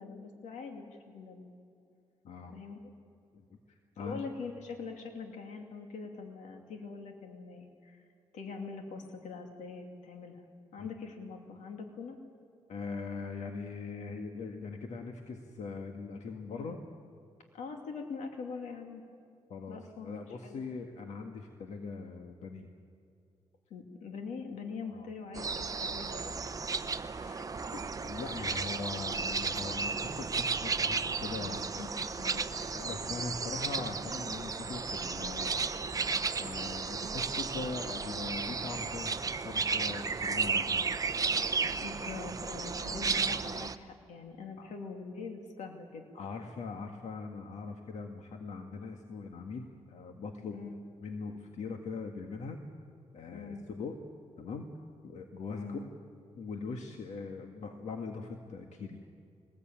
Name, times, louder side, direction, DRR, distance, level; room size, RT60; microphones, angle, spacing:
voice 1, 0.0-1.5 2.5-2.9 4.0-8.0 8.3-10.5 10.7-12.2 16.5-16.8 17.5-19.0 19.7-20.2 20.4-20.6 23.7-26.3 27.2-27.8 28.3-28.7 31.7-32.5 41.8-46.0 50.5-50.7 53.3-53.6 55.5-55.9, left 4 dB, 85° left, 3 dB, 2.7 m, -43 dB
voice 2, 3.3-4.2 10.8-10.9 12.7-16.8 19.5-22.7 24.9-25.1 28.0-31.6 32.3-32.4 32.7-35.5 36.4-39.2 39.4-40.8 44.6-44.7 46.1-50.6 51.0-52.6 53.1-54.0 54.4-54.7 55.0-55.8 56.3-59.0, left 4 dB, 70° left, 4 dB, 1.8 m, -41 dB
sound 1, 25.3-43.8, right 4 dB, 30° right, 0.9 m, -34 dB
23.0 x 20.5 x 8.9 m, 2.5 s
cardioid pair, 100°, 12 cm